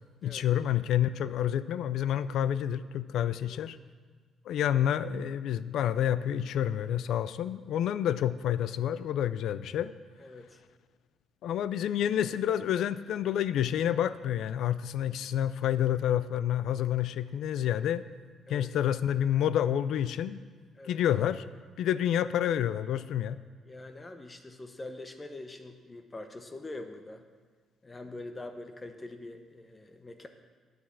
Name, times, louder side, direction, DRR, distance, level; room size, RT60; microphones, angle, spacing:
voice 1, 0.2-3.8 4.5-9.9 11.4-18.0 18.5-20.4 20.8-21.4 21.8-23.4, left 10 dB, 80° left, 15 dB, 0.4 m, -28 dB
voice 2, 3.2-3.7 10.2-10.6 18.5-18.7 20.7-21.0 23.6-27.3 27.8-30.3, left 2 dB, 25° left, 7 dB, 0.8 m, -44 dB
9.4 x 6.3 x 7.4 m, 1.5 s
cardioid pair, 90°, 0 cm